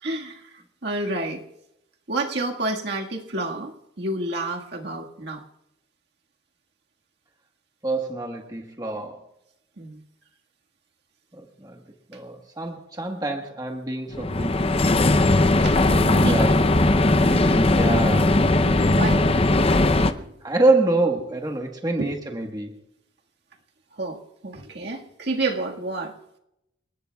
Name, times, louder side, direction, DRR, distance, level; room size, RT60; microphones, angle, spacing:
voice 1, 0.0-0.5 0.8-1.4 2.1-5.4 9.8-10.0 15.6-15.8 16.1-16.5 17.4-17.5 18.6-19.5 19.8-20.3 22.0-22.1 24.0-26.1, right 2 dB, 55° right, 1 dB, 1.8 m, -30 dB
voice 2, 7.8-9.2 11.3-11.8 12.1-14.7 15.9-16.6 17.2-18.4 20.4-22.8, right 2 dB, 20° right, 2 dB, 1.4 m, -26 dB
sound 1, 14.1-20.1, left 2 dB, 30° left, 0.6 m, -19 dB
29.5 x 19.0 x 2.3 m, 0.83 s
head